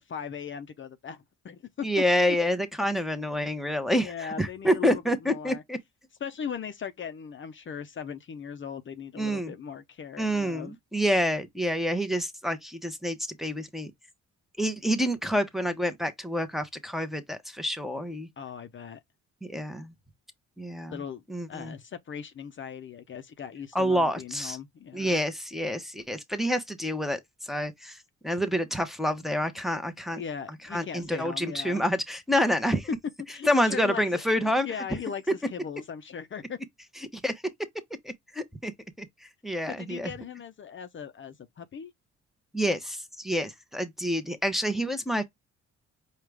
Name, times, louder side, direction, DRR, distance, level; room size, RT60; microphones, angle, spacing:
voice 1, 0.0-1.9 4.0-5.6 6.2-10.7 18.4-19.0 20.9-21.2 21.5-25.2 30.1-31.8 33.3-36.6 39.7-41.9, left 7 dB, 40° left, 0.6 m, -39 dB
voice 2, 1.8-5.8 9.2-9.5 10.2-13.9 14.6-18.3 19.4-19.9 20.6-21.0 21.3-21.7 23.7-24.6 24.9-28.0 28.2-30.2 30.7-32.9 33.5-34.7 37.1-37.3 38.0-38.7 39.0-39.1 39.4-40.1 42.5-45.2, equal, ahead, 0.8 m, -28 dB
4.8 x 2.3 x 3.3 m
cardioid pair, 90°, 30 cm